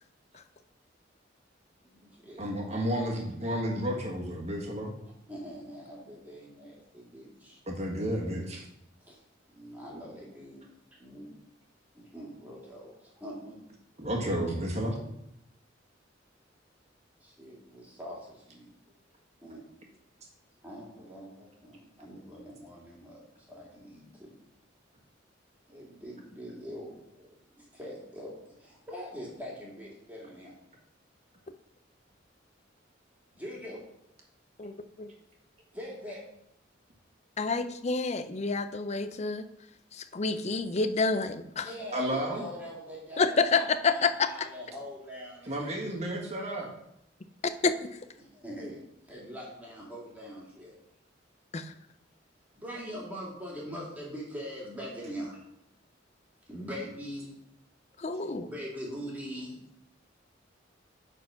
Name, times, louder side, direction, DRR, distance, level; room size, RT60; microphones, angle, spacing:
voice 1, 1.8-2.4 5.3-7.6 9.0-9.2 9.5-10.7 11.0-11.3 11.9-13.7 17.2-18.7 19.4-19.6 20.6-24.4 25.7-30.5 33.3-33.8 35.7-36.2 41.6-46.1 48.2-50.7 52.6-55.4 56.5-57.3 58.4-59.6, equal, 10° right, -5 dB, 2.6 m, -43 dB
voice 2, 2.4-4.9 7.7-8.7 14.0-15.0 41.9-42.4 45.5-46.7, equal, 35° right, 0 dB, 1.8 m, -31 dB
voice 3, 34.6-35.1 37.4-39.4 39.9-41.7 43.2-44.1 47.4-47.7 51.5-51.7 58.0-58.5, left 4 dB, 35° left, 11 dB, 0.5 m, -28 dB
9.0 x 4.4 x 5.7 m, 0.79 s
head